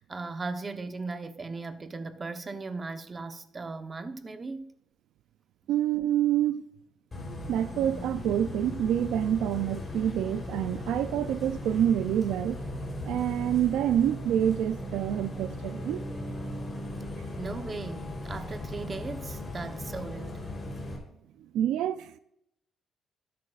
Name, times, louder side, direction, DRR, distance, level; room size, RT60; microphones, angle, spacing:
voice 1, 0.0-4.7 17.4-20.4, right 3 dB, 30° right, 0.9 m, -37 dB
voice 2, 5.7-6.7 7.5-12.6 13.0-16.1 21.5-22.2, right 10 dB, 85° right, 0.4 m, -27 dB
Bus, 7.1-21.0, left 1 dB, 30° left, 3.5 m, -38 dB
13.0 x 10.5 x 2.4 m
cardioid pair, 90°, 0 cm